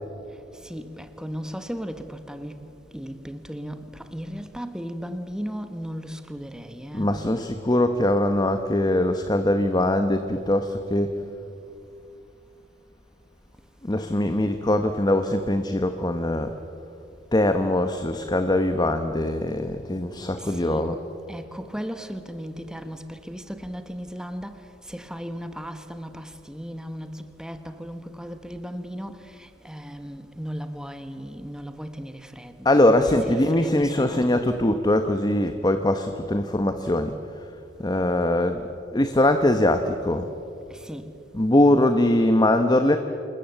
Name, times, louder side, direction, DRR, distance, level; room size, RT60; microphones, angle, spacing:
voice 1, 0.6-2.6 2.9-7.1 20.4-20.8 21.3-24.6 24.9-34.2 34.5-34.6 40.8-41.0, equal, 5° right, 1.3 m, -36 dB
voice 2, 6.9-11.1 13.8-16.5 17.3-21.0 32.6-37.1 37.8-38.6 38.9-40.3 41.3-43.0, left 1 dB, 20° left, 1.0 m, -22 dB
27.5 x 21.0 x 7.9 m
head